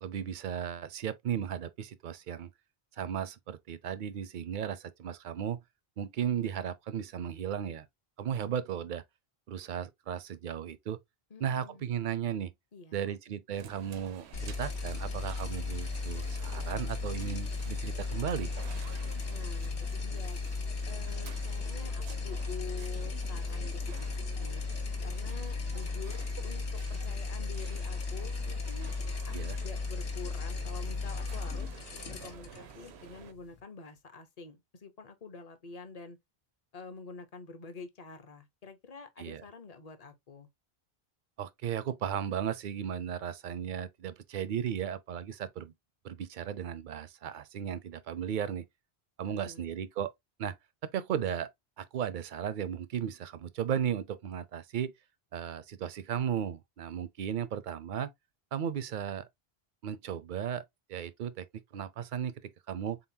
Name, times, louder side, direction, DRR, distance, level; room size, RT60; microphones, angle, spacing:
voice 1, 0.0-2.5 3.0-5.6 6.0-7.9 8.2-9.0 9.5-11.0 11.4-12.5 12.9-18.5 29.3-29.6 39.2-39.4 41.4-45.7 46.0-48.7 49.2-50.1 50.4-50.5 50.8-51.5 51.8-54.9 55.3-58.1 58.5-59.3 59.8-60.6 60.9-61.5 61.7-63.0, right 9 dB, 60° right, 0.6 m, -35 dB
voice 2, 11.3-11.9 12.7-13.2 19.3-20.4 20.9-24.1 24.4-24.6 25.0-28.9 29.3-31.7 32.1-36.2 36.7-40.5 49.2-49.6, left 5 dB, 40° left, 0.8 m, -47 dB
sound 1, 13.5-33.3, right 8 dB, 85° right, 0.9 m, -50 dB
sound 2, 14.3-33.6, left 4 dB, 70° left, 1.2 m, -36 dB
3.9 x 3.9 x 2.6 m
omnidirectional pair, 1.1 m